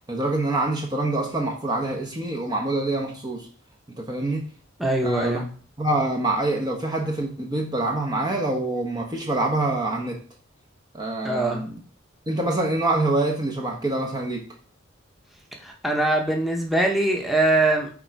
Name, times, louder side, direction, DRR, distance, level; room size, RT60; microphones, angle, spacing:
voice 1, 0.1-3.5 4.0-4.5 5.0-5.4 5.8-10.2 10.9-11.7 12.3-14.5, right 2 dB, 20° right, 0 dB, 1.0 m, -25 dB
voice 2, 4.8-5.5 11.2-11.7 15.6-17.9, right 2 dB, ahead, 0 dB, 1.1 m, -22 dB
8.7 x 3.8 x 4.7 m, 0.41 s
head